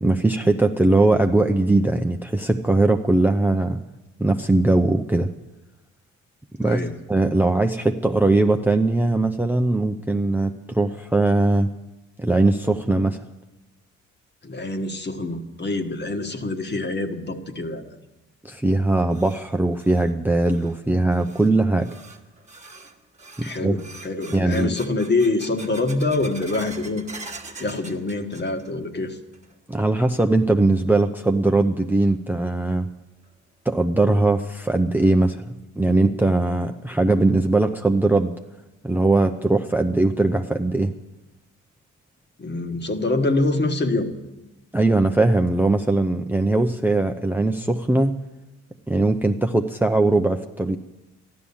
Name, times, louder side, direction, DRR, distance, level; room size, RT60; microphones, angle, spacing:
voice 1, 0.0-3.8 4.2-5.3 6.6-11.7 12.2-13.2 18.4-21.9 23.6-23.8 24.3-24.7 29.7-32.9 33.7-35.4 35.8-38.3 38.8-40.9 44.7-48.1 48.9-50.8, right 2 dB, 5° right, 6 dB, 0.6 m, -20 dB
voice 2, 6.6-6.9 14.4-18.0 23.4-27.1 27.6-29.2 42.4-44.1, left 2 dB, 35° left, 6 dB, 1.5 m, -25 dB
sound 1, 19.1-28.9 29.1-29.7 30.1-30.2 31.0-31.1 32.7-32.8 33.2-33.3 33.8-33.9 34.4-34.5 35.0-35.4, right 3 dB, 25° right, 1.4 m, -44 dB
14.0 x 11.5 x 7.1 m, 1.0 s
cardioid pair, 90°, 30 cm